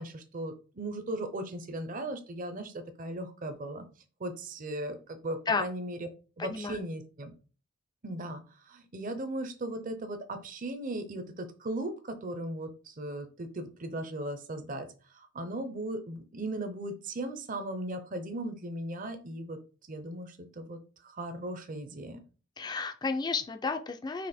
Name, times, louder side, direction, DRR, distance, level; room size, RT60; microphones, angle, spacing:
voice 1, 0.0-3.8 4.2-6.1 6.4-7.3 8.0-19.6 19.9-22.2, right 1 dB, 40° right, 8 dB, 0.7 m, -37 dB
voice 2, 6.4-6.8 22.6-24.3, left 4 dB, 20° left, 7 dB, 0.4 m, -32 dB
4.2 x 2.9 x 4.2 m, 0.36 s
head